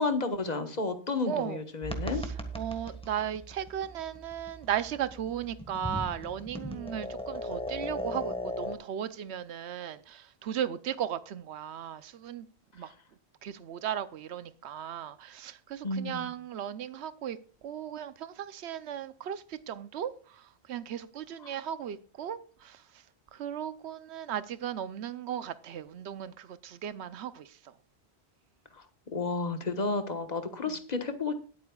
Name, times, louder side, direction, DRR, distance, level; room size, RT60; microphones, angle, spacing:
voice 1, 0.0-2.2 15.8-16.3 29.1-31.3, left 3 dB, 40° left, 1.4 m, -31 dB
voice 2, 1.2-1.6 2.1-12.5 12.7-12.9 13.4-23.0 23.3-27.7 30.7-30.8, right 9 dB, 80° right, 1.0 m, -36 dB
sound 1, 1.8-8.7, equal, 5° left, 1.4 m, -38 dB
20.5 x 8.5 x 2.3 m
omnidirectional pair, 1.1 m